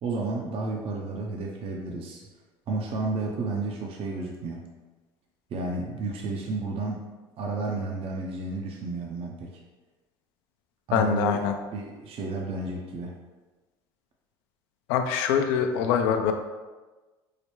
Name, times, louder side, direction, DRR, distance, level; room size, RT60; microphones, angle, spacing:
voice 1, 0.0-2.3 2.7-4.7 5.5-7.0 7.4-9.6 10.9-11.4 11.7-13.1, right 3 dB, 50° right, 0 dB, 0.6 m, -32 dB
voice 2, 10.9-11.5 14.9-16.3, left 7 dB, 75° left, 6 dB, 0.4 m, -24 dB
4.7 x 2.2 x 3.0 m, 1.2 s
hypercardioid pair, 80°, 12 cm